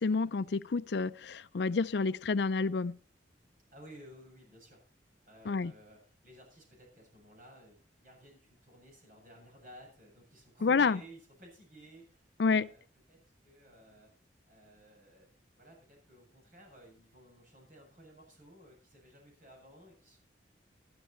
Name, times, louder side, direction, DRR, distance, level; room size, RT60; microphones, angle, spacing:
voice 1, 0.0-2.9 5.5-5.7 10.6-11.0 12.4-12.7, left 4 dB, 65° left, 0.5 m, -29 dB
voice 2, 3.7-4.8 5.2-12.8 13.1-14.1 14.5-15.3 15.6-20.2, right 1 dB, 50° right, 7.7 m, -56 dB
13.0 x 12.0 x 4.3 m
head